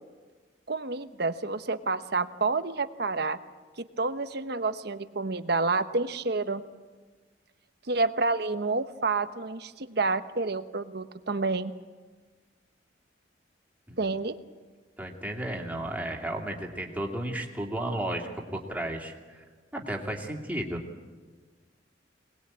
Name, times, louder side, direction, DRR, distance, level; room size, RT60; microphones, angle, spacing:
voice 1, 0.7-3.4 3.8-6.6 7.9-11.7 14.0-14.4, right 3 dB, 60° right, 11 dB, 1.0 m, -29 dB
voice 2, 15.0-19.4 19.7-20.8, right 1 dB, 10° right, 0 dB, 2.6 m, -33 dB
24.0 x 20.0 x 8.7 m, 1.4 s
head